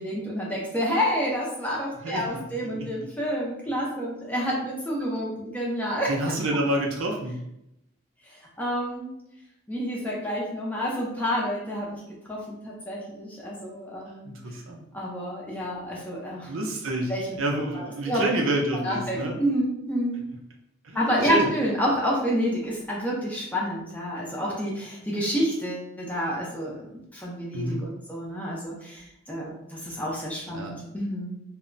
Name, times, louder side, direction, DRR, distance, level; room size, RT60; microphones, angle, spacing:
voice 1, 0.0-6.1 8.6-9.1 9.7-12.0 12.3-14.3 14.9-16.5 17.1-17.4 17.7-18.2 18.8-20.2 20.9-31.3, equal, 5° left, -4 dB, 0.5 m, -29 dB
voice 2, 6.1-7.4 14.3-14.8 16.5-17.1 17.4-19.4 20.8-21.5 27.5-27.8 30.5-30.8, right 1 dB, 70° right, 0 dB, 0.5 m, -28 dB
2.1 x 2.1 x 3.7 m, 0.82 s
head